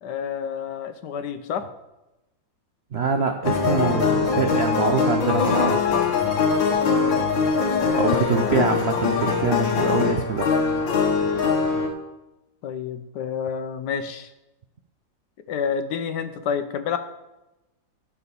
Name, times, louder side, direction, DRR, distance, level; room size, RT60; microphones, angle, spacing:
voice 1, 0.0-1.7 7.7-8.7 12.6-14.3 15.5-17.0, left 7 dB, 70° left, 10 dB, 1.3 m, -29 dB
voice 2, 2.9-5.8 7.9-10.5, right 5 dB, 65° right, 5 dB, 0.6 m, -24 dB
sound 1, 3.4-11.9, left 5 dB, 90° left, 2.0 m, -22 dB
11.5 x 5.0 x 6.9 m, 0.97 s
omnidirectional pair, 2.0 m